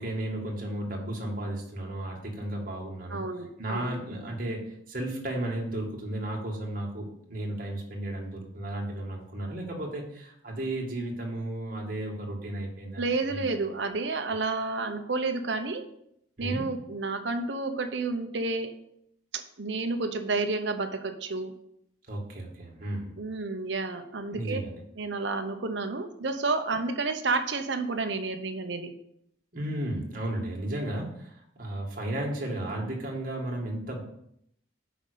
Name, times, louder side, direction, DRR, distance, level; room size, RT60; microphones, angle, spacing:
voice 1, 0.0-3.2 3.6-13.5 16.4-16.7 22.1-23.1 24.3-24.8 29.5-34.0, right 1 dB, 50° right, 0 dB, 1.8 m, -34 dB
voice 2, 3.1-3.9 13.0-15.9 16.4-18.7 19.3-21.5 23.2-24.6 25.0-28.9, right 3 dB, 65° right, 6 dB, 0.9 m, -30 dB
5.9 x 5.1 x 6.7 m, 0.73 s
head